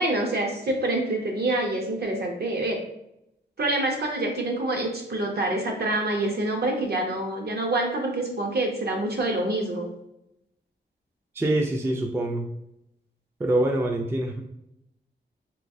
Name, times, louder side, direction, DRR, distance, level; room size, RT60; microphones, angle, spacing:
voice 1, 0.0-2.8 3.6-9.9, right 2 dB, 60° right, 1 dB, 0.7 m, -26 dB
voice 2, 11.4-12.5 13.4-14.4, right 1 dB, 15° right, 2 dB, 0.3 m, -25 dB
3.1 x 3.0 x 2.6 m, 0.82 s
wide cardioid pair, 110°, 19 cm